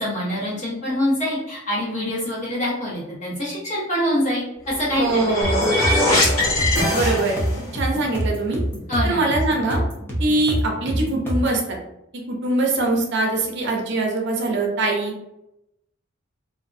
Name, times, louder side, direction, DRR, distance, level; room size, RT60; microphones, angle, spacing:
voice 1, 0.0-5.3 8.9-9.2, equal, 35° left, -7 dB, 1.2 m, -25 dB
sound 1, 4.7-7.7, left 1 dB, 90° left, 1.1 m, -21 dB
voice 2, 5.0-5.7 6.9-8.6 9.0-9.8 10.2-11.8 12.3-15.1, right 2 dB, 60° right, 0 dB, 0.6 m, -23 dB
sound 2, 5.4-11.6, right 1 dB, 10° left, 0.6 m, -26 dB
2.7 x 2.5 x 2.5 m, 0.85 s
head